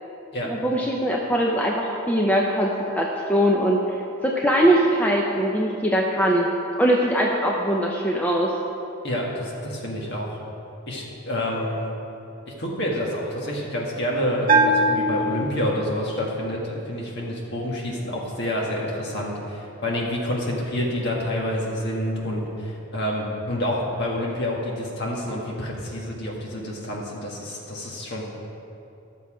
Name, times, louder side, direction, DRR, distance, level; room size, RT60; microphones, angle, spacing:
voice 1, 0.4-4.0 4.2-6.5 6.8-8.5, equal, 5° left, -2 dB, 0.5 m, -21 dB
voice 2, 9.0-10.4 10.9-11.9 12.5-28.3, left 1 dB, 50° left, -3 dB, 1.7 m, -28 dB
Bell, 14.5-16.1, right 2 dB, 40° right, 0.8 m, -22 dB
11.5 x 6.7 x 5.0 m, 2.8 s
head